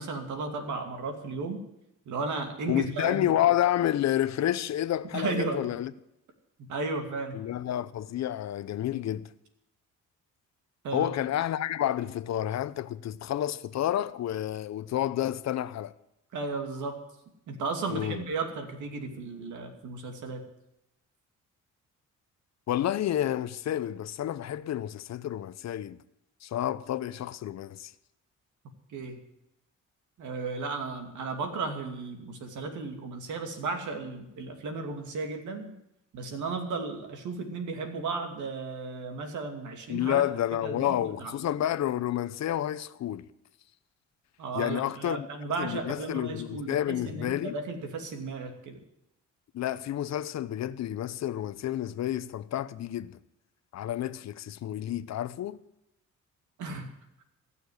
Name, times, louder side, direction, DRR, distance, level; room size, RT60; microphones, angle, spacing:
voice 1, 0.0-1.6 2.1-3.4 5.1-5.7 6.7-7.4 10.8-11.1 16.3-17.0 17.5-20.4 28.9-29.2 30.2-35.7 36.1-40.2 40.6-41.3 44.4-48.8 56.6-56.9, right 3 dB, 75° right, 2.6 m, -34 dB
voice 2, 2.7-5.9 7.3-9.3 10.9-15.9 17.9-18.2 22.7-26.0 26.4-27.9 39.9-43.3 44.5-45.3 45.6-47.6 49.5-53.2 53.7-55.6, left 12 dB, 60° left, 0.7 m, -30 dB
15.5 x 6.9 x 9.5 m
cardioid pair, 90°, 30 cm